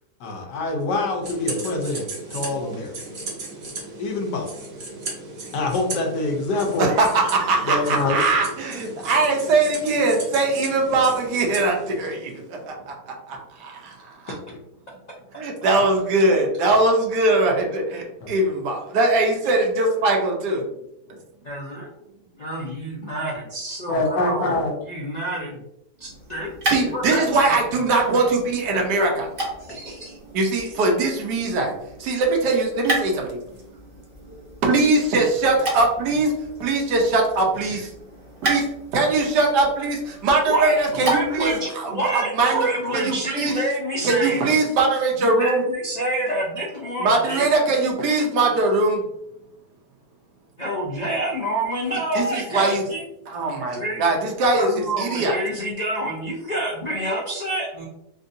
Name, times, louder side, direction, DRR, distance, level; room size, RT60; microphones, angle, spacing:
voice 1, 0.2-2.9 4.0-4.5 5.5-6.9 7.6-8.2 18.2-18.3 23.9-24.7, left 2 dB, 90° left, 1 dB, 1.4 m, -25 dB
sound 1, 1.2-12.5, right 3 dB, 55° right, 1.3 m, -36 dB
voice 2, 6.8-14.0 14.2-14.3 15.3-20.7 26.7-29.3 30.3-33.4 34.6-36.3 36.6-37.9 38.4-38.6 38.9-43.5 44.0-45.6 47.0-49.0 52.1-52.8 53.3-54.7 55.0-55.4, right 2 dB, 80° right, 1 dB, 1.3 m, -21 dB
voice 3, 21.4-21.9 22.4-24.5 24.9-25.6 26.0-27.6 29.6-30.2 40.4-44.4 45.2-47.5 50.6-53.0 53.7-54.0 54.5-57.8, right 1 dB, 70° left, -4 dB, 0.4 m, -28 dB
sound 2, 25.9-41.6, right 1 dB, 40° right, 0.9 m, -33 dB
3.7 x 2.6 x 2.6 m, 0.83 s
omnidirectional pair, 1.8 m